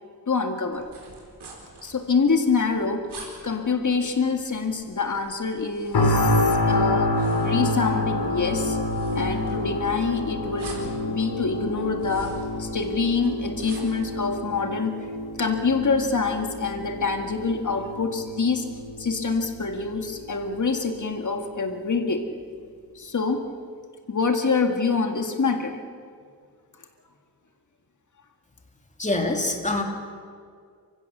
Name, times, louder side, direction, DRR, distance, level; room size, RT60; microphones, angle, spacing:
voice 1, 0.3-0.9 1.8-3.1 3.4-8.8 9.1-15.1 15.4-18.7 19.0-22.3 23.0-23.5 24.1-25.8, left 4 dB, 50° left, 5 dB, 2.0 m, -26 dB
sound 1, 0.7-14.1, right 3 dB, 90° right, 4.6 m, -47 dB
sound 2, 5.9-20.9 21.4-21.6, left 2 dB, 80° left, 3.5 m, -28 dB
voice 2, 29.0-29.8, left 2 dB, 20° left, 2 dB, 3.0 m, -25 dB
29.5 x 15.5 x 6.8 m, 2.1 s
wide cardioid pair, 85°, 39 cm